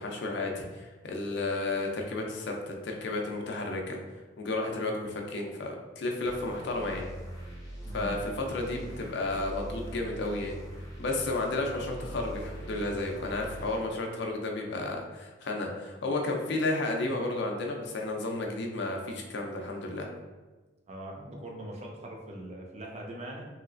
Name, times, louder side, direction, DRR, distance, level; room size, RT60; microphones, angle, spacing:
voice 1, 0.0-4.0 4.4-7.0 7.9-10.5 11.0-20.1, left 2 dB, 65° left, 2 dB, 0.5 m, -32 dB
sound 1, 6.2-13.8, equal, 20° left, 0.7 m, -42 dB
voice 2, 7.8-8.2 20.9-23.5, right 1 dB, 35° right, -1 dB, 0.5 m, -41 dB
3.1 x 2.8 x 2.5 m, 1.3 s
head